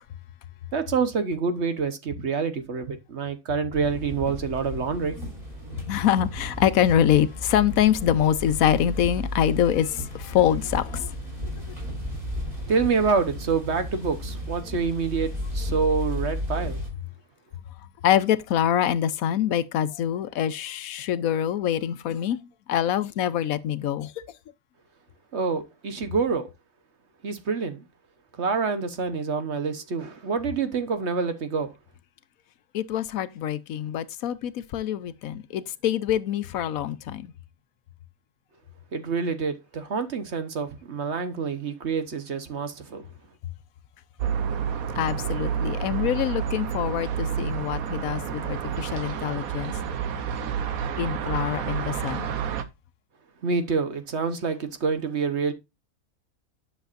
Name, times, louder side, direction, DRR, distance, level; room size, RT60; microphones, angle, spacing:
voice 1, 0.7-5.1 12.7-16.8 25.3-26.5 27.2-27.8 28.4-31.7 38.9-43.0 53.4-55.5, right 5 dB, 55° right, 1.3 m, -27 dB
sound 1, 3.7-16.9, left 1 dB, 25° right, 5.0 m, -34 dB
voice 2, 5.9-11.2 18.0-24.1 26.0-26.1 32.7-37.3 44.9-49.8 51.0-52.3, left 10 dB, 75° left, 1.1 m, -25 dB
sound 2, 44.2-52.6, right 8 dB, 80° right, 1.3 m, -29 dB
10.5 x 6.7 x 2.5 m
omnidirectional pair, 1.5 m